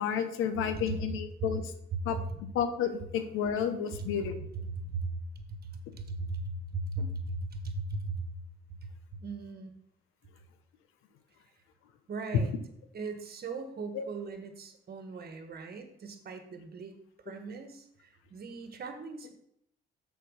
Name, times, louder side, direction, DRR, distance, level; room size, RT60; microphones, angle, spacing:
voice 1, 0.0-1.7 2.0-2.2 2.5-4.3 13.9-14.0, left 8 dB, 85° left, 9 dB, 0.8 m, -31 dB
voice 2, 3.9-5.1 5.5-8.3 8.8-8.9 9.2-9.7 12.1-12.5 12.9-16.9 17.2-19.3, right 3 dB, 50° right, 7 dB, 1.4 m, -38 dB
6.8 x 4.5 x 6.3 m, 0.71 s
cardioid pair, 75°, 21 cm